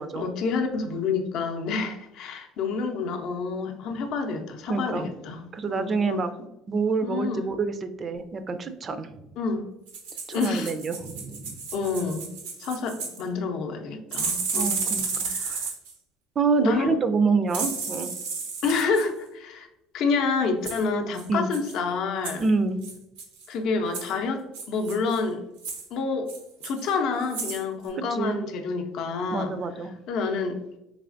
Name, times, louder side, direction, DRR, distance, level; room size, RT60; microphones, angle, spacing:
voice 1, 0.2-6.2 7.0-7.5 9.4-9.6 10.3-10.7 11.7-12.3 12.6-14.8 15.3-15.6 16.6-16.9 18.6-19.7 19.9-22.4 23.5-25.4 25.9-26.3 26.6-29.5 30.1-30.8, left 4 dB, 65° left, 4 dB, 0.5 m, -28 dB
voice 2, 4.7-5.1 5.5-9.1 10.3-11.6 14.5-15.6 16.4-18.1 21.3-21.5 22.4-22.8 28.0-28.4 29.3-29.9, right 4 dB, 40° right, 10 dB, 0.4 m, -27 dB
sound 1, 9.9-13.2 14.1-15.9 17.5-19.0 20.6-20.8 21.1-21.3 21.5-21.8 22.2-22.5 22.8-23.5 23.9-24.1 24.5-25.2 25.6-25.9 26.3-26.9 27.2-27.6 27.9-28.0, right 5 dB, 90° right, 0.7 m, -32 dB
3.3 x 3.1 x 2.5 m, 0.89 s
supercardioid pair, 85°, 0 cm